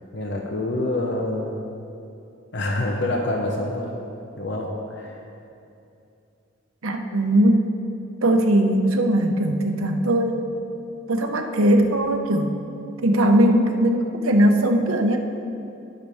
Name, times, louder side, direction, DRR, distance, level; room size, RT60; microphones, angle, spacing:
voice 1, 0.1-1.5 2.5-4.0 4.4-5.3, left 1 dB, 55° left, 1 dB, 0.9 m, -26 dB
voice 2, 6.8-7.7 8.2-10.5 11.1-12.6 13.0-15.2, right 1 dB, 90° right, 4 dB, 0.9 m, -19 dB
18.0 x 6.7 x 3.5 m, 2.7 s
head